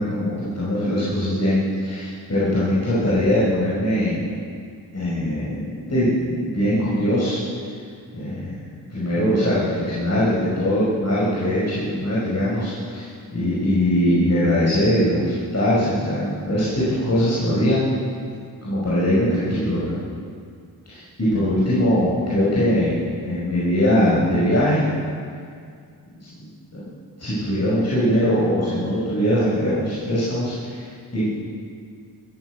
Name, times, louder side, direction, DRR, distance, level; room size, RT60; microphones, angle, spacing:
voice 1, 0.0-4.2 4.9-7.4 8.1-8.5 8.9-17.8 18.6-20.0 20.9-24.8 26.7-26.8 27.2-31.2, equal, 40° left, -9 dB, 5.7 m, -21 dB
16.0 x 11.0 x 7.9 m, 2.2 s
cardioid pair, 55°, 39 cm